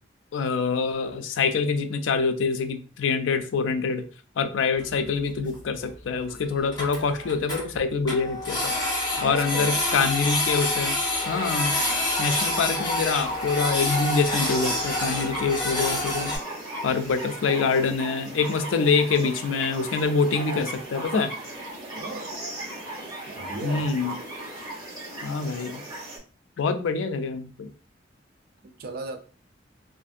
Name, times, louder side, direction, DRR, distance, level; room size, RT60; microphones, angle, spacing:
voice 1, 0.3-4.0 4.4-8.7 9.2-11.0 11.3-11.7 12.2-16.3 16.8-21.3 23.6-24.2 25.2-25.8 26.6-27.7, left 5 dB, 90° left, 0.4 m, -25 dB
Printer, 4.8-4.9 5.1-5.2 5.5-5.6 5.9-6.0 6.3-6.4 6.6-7.6 8.1-16.4, left 2 dB, 25° left, 1.0 m, -27 dB
voice 2, 9.2-9.8 21.9-22.4 23.4-23.9 28.6-29.2, right 3 dB, 55° right, 0.4 m, -36 dB
sound 1, 11.1-26.2, right 1 dB, 20° right, 0.9 m, -36 dB
2.5 x 2.5 x 2.5 m
head